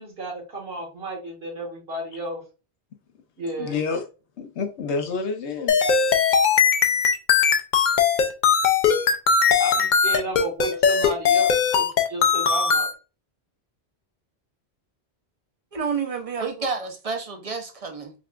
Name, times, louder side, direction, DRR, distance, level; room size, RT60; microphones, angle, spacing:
voice 1, 0.0-2.4 3.4-3.8 9.6-12.9, right 1 dB, 60° right, 1.5 m, -33 dB
voice 2, 3.6-4.0 4.4-5.9, left 4 dB, 90° left, 1.0 m, -28 dB
sound 1, 5.7-12.9, left 6 dB, 55° left, 0.6 m, -19 dB
voice 3, 15.7-18.1, right 5 dB, 40° right, 0.7 m, -29 dB
5.1 x 2.4 x 2.4 m
omnidirectional pair, 1.1 m